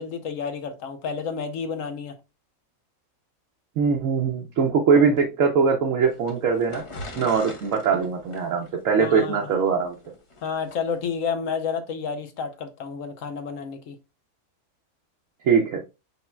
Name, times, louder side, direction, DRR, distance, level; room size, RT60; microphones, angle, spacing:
voice 1, 0.0-2.1 9.0-9.5 10.4-14.0, left 6 dB, 70° left, 1.1 m, -30 dB
voice 2, 3.8-6.8 7.2-9.9 15.4-15.8, right 5 dB, 70° right, 1.1 m, -21 dB
sound 1, 6.1-10.8, left 2 dB, 25° left, 0.7 m, -41 dB
5.4 x 4.4 x 2.2 m
omnidirectional pair, 1.5 m